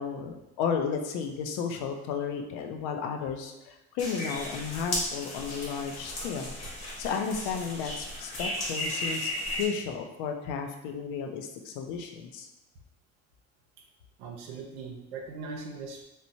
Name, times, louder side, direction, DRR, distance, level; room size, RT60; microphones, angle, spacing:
voice 1, 0.0-6.5 7.0-12.5, left 6 dB, 80° left, 4 dB, 0.5 m, -33 dB
sound 1, 4.0-9.7, left 1 dB, 55° left, 1.0 m, -35 dB
voice 2, 14.2-16.0, right 4 dB, 90° right, 1 dB, 0.5 m, -40 dB
3.0 x 2.1 x 2.6 m, 0.93 s
supercardioid pair, 75°, 30 cm